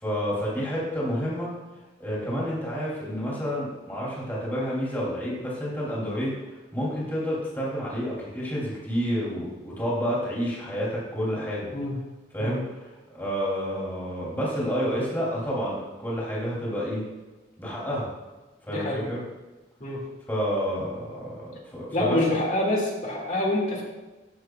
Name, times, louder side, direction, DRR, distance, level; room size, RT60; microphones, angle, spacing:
voice 1, 0.0-1.5 2.0-6.4 6.7-11.7 12.3-12.7 13.1-17.0 17.6-18.1 18.6-19.2 20.3-22.2, equal, 10° left, -6 dB, 2.7 m, -29 dB
voice 2, 18.7-19.0 19.8-20.0 21.9-23.8, left 1 dB, 45° left, -2 dB, 2.0 m, -26 dB
13.5 x 6.0 x 2.3 m, 1.2 s
head